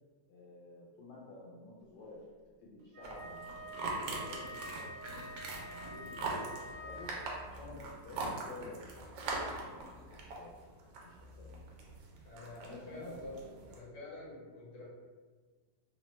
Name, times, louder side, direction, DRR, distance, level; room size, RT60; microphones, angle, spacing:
voice 1, 0.3-2.2 2.6-6.5 6.8-7.1 7.4-10.5 11.0-11.6 12.6-13.9, left 2 dB, 80° left, -6 dB, 1.2 m, -52 dB
Wind instrument woodwind instrument, 2.9-7.5, equal, 70° right, 1.1 m, -47 dB
sound 1, 3.0-13.8, right 3 dB, 90° right, 1.3 m, -42 dB
voice 2, 12.2-14.8, left 1 dB, 55° left, -5 dB, 1.3 m, -48 dB
3.2 x 2.1 x 3.0 m, 1.4 s
omnidirectional pair, 1.9 m